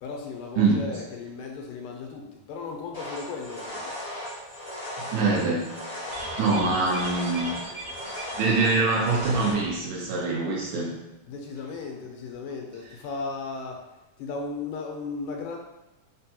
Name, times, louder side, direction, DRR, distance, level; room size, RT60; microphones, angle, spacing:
voice 1, 0.0-3.9 6.4-6.7 11.2-13.8 14.2-15.6, left 4 dB, 85° left, 1 dB, 2.2 m, -36 dB
sound 1, 2.9-9.5, left 1 dB, 40° left, 0.8 m, -37 dB
voice 2, 5.0-5.7 6.4-7.5 8.3-11.0, right 3 dB, 75° right, -3 dB, 1.9 m, -24 dB
sound 2, 6.1-9.6 9.8-9.9 10.2-10.3, right 2 dB, 60° right, 1.8 m, -39 dB
5.2 x 2.2 x 2.8 m, 1.0 s
omnidirectional pair, 3.8 m